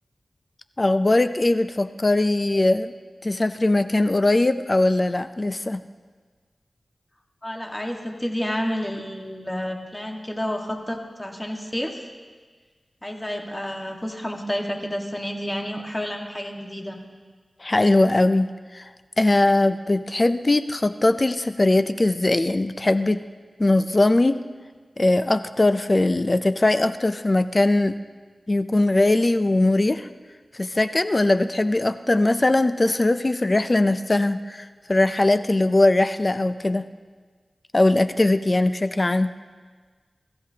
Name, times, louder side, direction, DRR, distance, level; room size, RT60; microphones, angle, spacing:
voice 1, 0.8-2.9 3.2-5.8 17.6-18.9 19.2-23.2 23.6-24.4 25.0-28.0 28.5-30.1 30.5-36.9 37.7-39.3, left 2 dB, 35° left, 10 dB, 0.5 m, -20 dB
voice 2, 7.4-12.0 13.0-17.0, equal, 20° left, 1 dB, 1.6 m, -30 dB
24.5 x 14.5 x 2.8 m, 1.5 s
wide cardioid pair, 80°, 0 cm